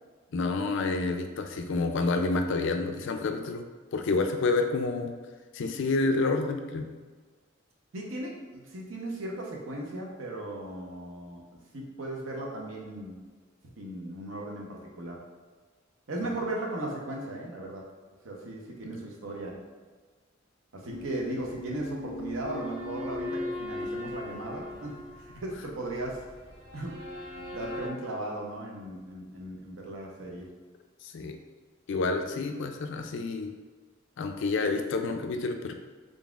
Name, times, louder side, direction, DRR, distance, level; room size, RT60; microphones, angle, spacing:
voice 1, 0.3-3.6 3.9-5.1 5.5-6.9 18.8-18.9 31.0-31.4 31.9-33.5 34.2-35.7, left 3 dB, 65° left, 6 dB, 0.4 m, -29 dB
voice 2, 7.9-11.4 11.7-13.2 13.8-15.2 16.1-17.8 18.2-19.6 20.7-26.3 26.7-26.9 27.5-30.5 32.5-32.6, right 1 dB, 80° right, -1 dB, 0.8 m, -37 dB
sound 1, 20.9-27.9, left 1 dB, 45° right, 1.5 m, -38 dB
3.9 x 3.5 x 2.4 m, 1.4 s
head